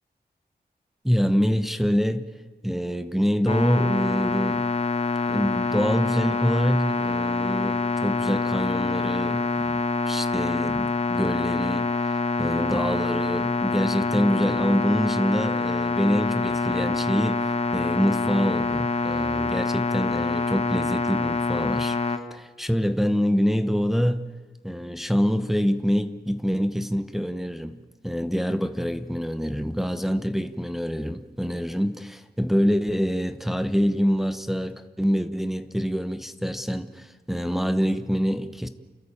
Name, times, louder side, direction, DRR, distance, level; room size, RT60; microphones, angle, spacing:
voice 1, 1.0-2.2 2.6-4.6 5.3-11.9 12.4-17.4 17.7-22.0 22.3-24.2 24.6-27.8 28.0-38.7, equal, ahead, 1.0 m, -25 dB
sound 1, 3.5-22.2, left 3 dB, 35° left, 1.6 m, -26 dB
30.0 x 13.5 x 8.6 m
wide cardioid pair, 140°, 17 cm